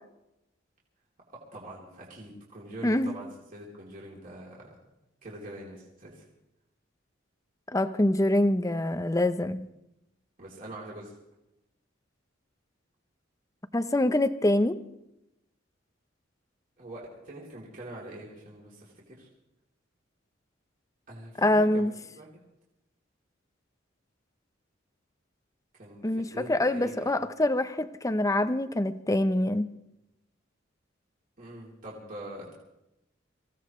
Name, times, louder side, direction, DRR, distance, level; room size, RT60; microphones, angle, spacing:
voice 1, 1.3-4.7 5.2-6.1 10.4-11.1 16.8-18.9 19.2-19.3 21.1-21.8 22.1-22.3 25.8-27.1 31.4-32.5, right 1 dB, 45° right, 3.2 m, -44 dB
voice 2, 2.8-3.2 7.7-9.7 13.7-14.8 21.4-21.9 26.0-29.7, left 1 dB, 15° left, 0.6 m, -25 dB
25.0 x 16.0 x 3.2 m
head